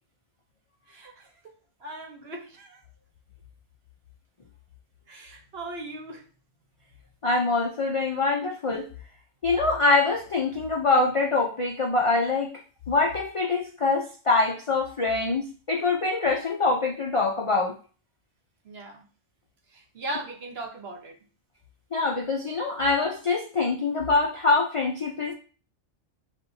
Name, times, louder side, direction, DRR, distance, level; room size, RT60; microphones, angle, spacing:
voice 1, 0.9-1.3 1.8-2.8 5.1-6.2 18.6-19.0 19.9-21.2, right 2 dB, 55° right, 2 dB, 1.1 m, -38 dB
voice 2, 7.2-8.9 9.4-12.5 12.9-17.8 21.9-25.3, left 3 dB, 55° left, 0 dB, 0.3 m, -24 dB
7.1 x 2.6 x 2.6 m, 0.39 s
omnidirectional pair, 1.3 m